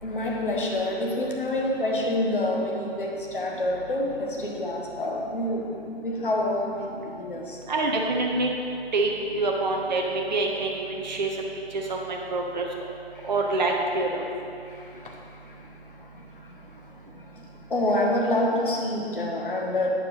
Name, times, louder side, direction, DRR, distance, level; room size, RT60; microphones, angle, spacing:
voice 1, 0.0-7.6 13.1-13.3 13.9-19.9, left 1 dB, 55° left, -1 dB, 1.2 m, -28 dB
voice 2, 7.7-8.5 8.9-11.3 11.9-12.6 13.2-14.2, right 2 dB, 45° right, 0 dB, 0.6 m, -26 dB
8.4 x 7.1 x 3.1 m, 2.7 s
figure-of-eight pair, 150°, 32 cm